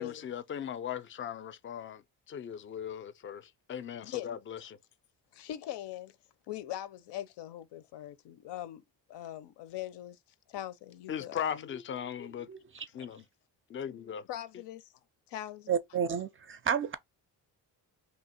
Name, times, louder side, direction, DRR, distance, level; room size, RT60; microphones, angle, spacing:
voice 1, 0.0-4.8 11.1-12.5 12.9-13.2 13.7-14.3 14.5-14.6, left 8 dB, 30° left, 0.4 m, -38 dB
voice 2, 5.3-6.2 6.5-8.8 9.1-10.2 10.5-11.7 13.0-13.1 14.3-14.9 15.3-15.7, left 12 dB, 85° left, 0.6 m, -41 dB
voice 3, 12.5-12.9 15.7-17.0, right 7 dB, 35° right, 0.4 m, -31 dB
2.9 x 2.9 x 4.2 m
cardioid pair, 135°, 40 cm